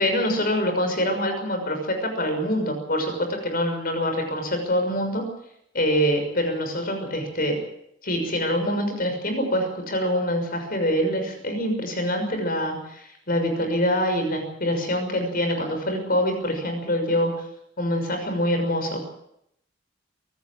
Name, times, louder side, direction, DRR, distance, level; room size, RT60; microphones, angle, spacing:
voice 1, 0.0-5.2 5.7-7.6 8.0-17.3 17.8-19.1, equal, 50° left, 5 dB, 6.3 m, -25 dB
25.5 x 14.0 x 9.1 m, 0.76 s
head